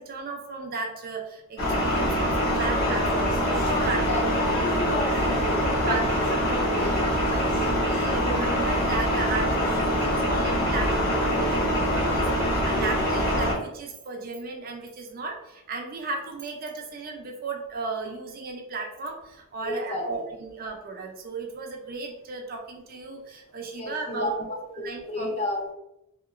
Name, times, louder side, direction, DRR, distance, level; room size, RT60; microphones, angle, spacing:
voice 1, 0.0-4.1 4.5-4.6 4.9-5.0 5.3-6.7 7.0-24.3 24.7-25.3, right 3 dB, 40° right, 2 dB, 0.4 m, -35 dB
sound 1, 1.6-13.5, equal, 50° left, 1.2 m, -24 dB
voice 2, 3.8-4.4 4.9-6.3 6.7-7.6 19.6-20.2 23.7-24.5 24.8-25.7, left 1 dB, 30° left, 2 dB, 0.5 m, -33 dB
2.8 x 2.8 x 2.4 m, 0.85 s
head